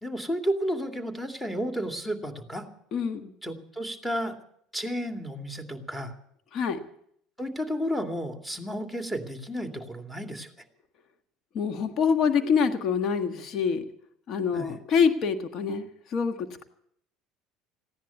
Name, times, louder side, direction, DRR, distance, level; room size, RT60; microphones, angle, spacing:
voice 1, 0.0-2.7 3.4-4.4 4.7-6.1 7.4-10.5 14.5-14.7, equal, 5° left, 4 dB, 2.5 m, -32 dB
voice 2, 2.9-3.3 6.5-6.8 11.5-13.8 14.3-16.6, left 6 dB, 55° left, 8 dB, 1.4 m, -26 dB
16.0 x 10.5 x 8.5 m, 0.70 s
supercardioid pair, 85°, 0 cm